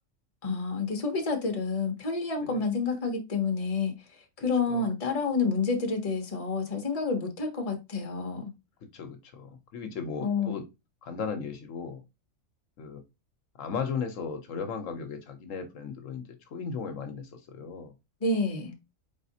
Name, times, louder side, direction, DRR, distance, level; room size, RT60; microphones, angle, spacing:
voice 1, 0.4-3.9 4.4-8.5 10.2-10.5 18.2-18.7, left 4 dB, 30° left, 0.9 m, -29 dB
voice 2, 8.9-10.6 11.0-12.0 12.8-13.0 13.6-16.2 16.5-17.9, left 5 dB, 75° left, 1.1 m, -36 dB
4.1 x 3.6 x 2.7 m
omnidirectional pair, 1.4 m